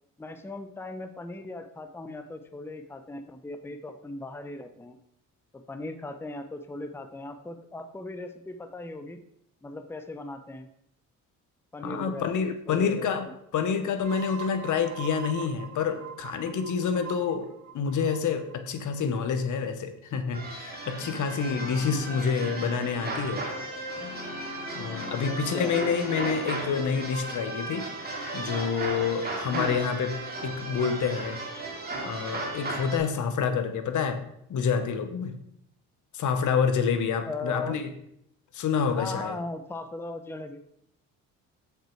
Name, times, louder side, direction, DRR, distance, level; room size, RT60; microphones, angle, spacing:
voice 1, 0.2-5.0 5.5-9.2 9.6-10.7 11.7-13.3 21.8-22.0 25.2-25.7 29.5-29.8 37.2-37.8 38.9-40.7, left 2 dB, 5° left, 8 dB, 0.6 m, -38 dB
voice 2, 11.8-13.3 13.5-17.5 17.7-23.4 24.7-27.9 28.3-30.1 30.4-31.4 32.0-34.2 34.5-35.3 36.1-37.9 38.5-39.3, left 6 dB, 60° left, 9 dB, 1.0 m, -28 dB
sound 1, 14.0-19.4, right 8 dB, 55° right, 1.1 m, -43 dB
sound 2, 20.3-33.0, right 2 dB, 30° right, 2.2 m, -35 dB
sound 3, 21.0-23.7 24.0-27.6, left 3 dB, 45° left, 3.3 m, -44 dB
7.4 x 5.5 x 4.5 m, 0.77 s
cardioid pair, 80°, 34 cm